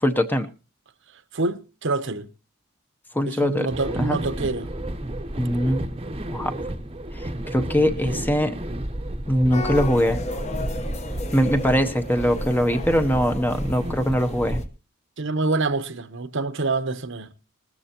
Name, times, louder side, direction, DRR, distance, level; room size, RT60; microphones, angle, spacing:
voice 1, 0.0-0.5 3.1-3.7 4.1-4.2 5.4-5.9 6.3-6.6 7.1-8.5 9.3-10.2 11.3-14.6, equal, 10° left, 0.8 m, -22 dB
voice 2, 1.3-2.3 3.3-4.7 8.0-8.3 15.2-17.3, right 3 dB, 55° right, 0.9 m, -26 dB
sound 1, 3.7-14.7, right 1 dB, 25° right, 0.9 m, -32 dB
sound 2, 9.5-14.6, left 1 dB, 30° left, 1.0 m, -34 dB
20.0 x 13.5 x 2.9 m
head